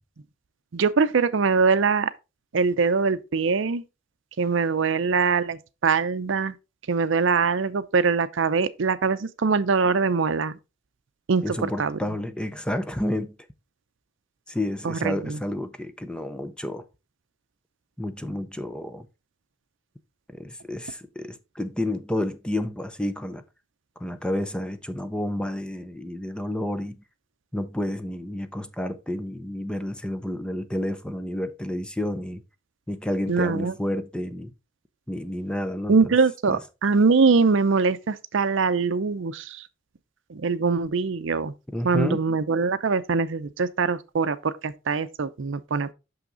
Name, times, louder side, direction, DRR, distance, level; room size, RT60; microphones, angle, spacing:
voice 1, 0.7-2.1 2.5-3.8 4.4-6.5 6.9-10.6 11.3-12.0 14.8-15.4 33.3-33.7 35.9-39.6 40.3-41.5 41.8-45.9, right 4 dB, 65° right, 0.5 m, -23 dB
voice 2, 11.4-13.3 14.5-16.9 18.0-19.1 20.3-23.4 24.0-27.0 27.5-32.4 32.9-34.5 35.1-36.1 36.5-36.6 41.7-42.2, left 1 dB, 5° left, 0.6 m, -30 dB
6.3 x 5.8 x 3.8 m
head